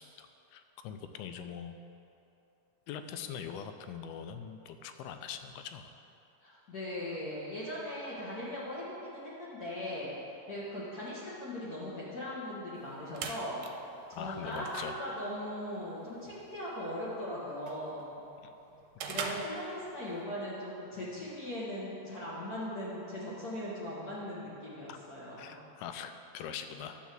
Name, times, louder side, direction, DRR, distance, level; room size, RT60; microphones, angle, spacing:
voice 1, 0.0-1.7 2.9-5.9 14.1-15.0 24.9-25.0 25.4-27.0, left 8 dB, 85° left, 8 dB, 2.5 m, -42 dB
voice 2, 6.4-10.1 10.5-13.7 14.1-18.2 19.1-25.6, left 1 dB, 65° left, -9 dB, 0.9 m, -39 dB
sound 1, 12.8-20.2, right 5 dB, 80° right, 2.2 m, -45 dB
11.0 x 4.7 x 7.6 m, 2.8 s
omnidirectional pair, 4.4 m